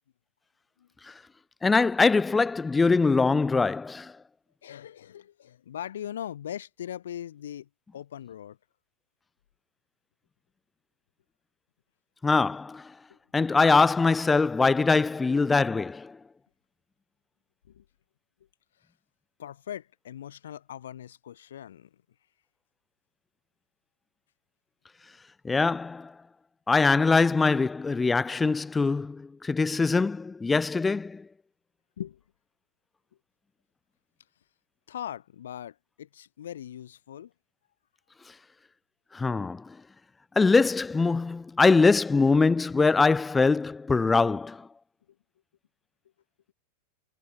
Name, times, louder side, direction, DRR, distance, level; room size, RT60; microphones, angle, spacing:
voice 1, 1.6-4.1 12.2-12.9 13.3-16.2 25.4-26.1 26.7-31.2 39.1-39.7 40.4-44.7, left 4 dB, 10° left, 0.3 m, -23 dB
voice 2, 4.6-8.6 13.1-13.2 17.7-17.8 19.4-21.9 32.0-32.2 34.9-37.3, left 10 dB, 60° left, 2.6 m, -40 dB
figure-of-eight pair, 90°, 0 cm